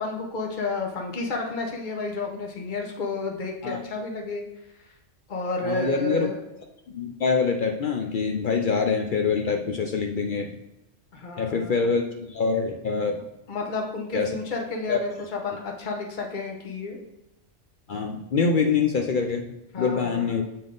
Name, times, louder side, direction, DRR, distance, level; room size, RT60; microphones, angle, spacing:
voice 1, 0.0-4.4 5.3-6.3 11.1-11.9 13.5-17.0 19.7-20.3, left 3 dB, 40° left, 1 dB, 1.0 m, -31 dB
voice 2, 5.6-6.3 6.9-10.5 11.4-13.2 14.1-14.3 14.9-15.0 17.9-20.4, left 5 dB, 70° left, 3 dB, 0.5 m, -25 dB
7.6 x 3.5 x 3.8 m, 0.94 s
omnidirectional pair, 1.4 m